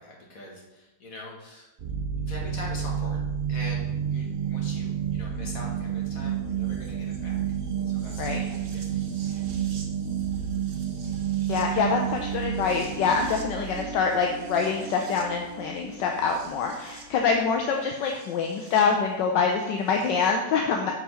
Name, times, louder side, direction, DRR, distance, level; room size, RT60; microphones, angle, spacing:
voice 1, 0.0-1.7 2.3-3.8 4.1-7.4 7.8-9.5, left 1 dB, 50° left, -2 dB, 2.0 m, -43 dB
sound 1, 1.8-18.8 20.0-20.1, right 8 dB, 50° right, 0.7 m, -31 dB
voice 2, 11.5-20.9, left 5 dB, 75° left, 2 dB, 1.3 m, -25 dB
5.6 x 4.9 x 5.5 m, 1.0 s
omnidirectional pair, 2.0 m